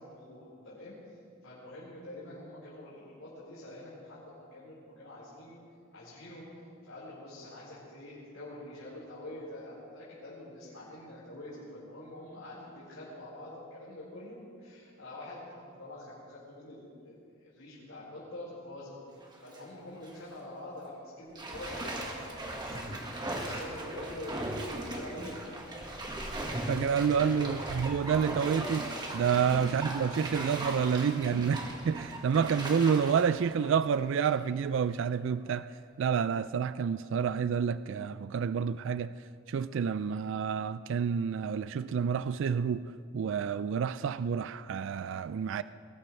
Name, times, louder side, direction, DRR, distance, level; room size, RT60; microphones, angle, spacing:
voice 1, 0.0-5.6 5.9-19.0 19.4-24.4 24.7-25.4 27.0-27.3 29.2-29.4, left 1 dB, 80° left, 4.5 m, -46 dB
Bathtub (filling or washing), 19.2-19.6 20.0-20.2 21.4-34.5 34.9-35.0, right 1 dB, 20° right, 1.6 m, -38 dB
voice 2, 26.7-35.7 36.0-39.1 39.5-42.9 43.1-45.6, right 7 dB, 65° right, 0.3 m, -29 dB
22.0 x 18.0 x 3.3 m
head